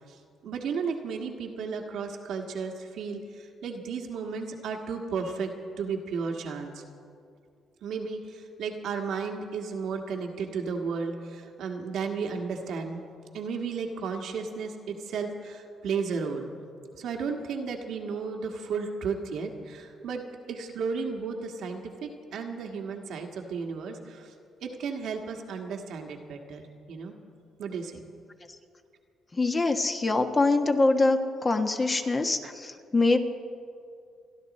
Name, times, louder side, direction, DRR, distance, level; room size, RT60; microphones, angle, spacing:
voice 1, 0.4-5.5 5.8-6.8 7.8-13.0 13.3-16.5 17.0-20.2 20.5-24.3 24.6-27.1 27.6-28.1, right 5 dB, 75° right, 2 dB, 1.6 m, -34 dB
voice 2, 29.3-33.2, left 3 dB, 30° left, 5 dB, 1.3 m, -24 dB
28.5 x 11.0 x 4.2 m, 2.4 s
cardioid pair, 90°, 0 cm